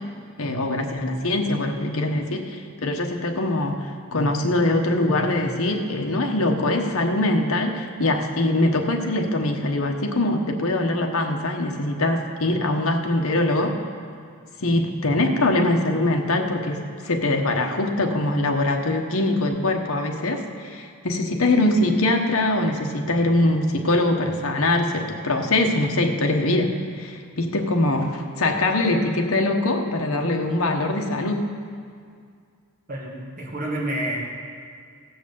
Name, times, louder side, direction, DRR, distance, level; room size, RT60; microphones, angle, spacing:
voice 1, 0.4-13.8 14.6-31.4, left 2 dB, 70° left, 3 dB, 1.1 m, -23 dB
voice 2, 32.9-34.2, right 1 dB, 40° right, -4 dB, 1.7 m, -29 dB
16.5 x 6.1 x 7.0 m, 2.2 s
head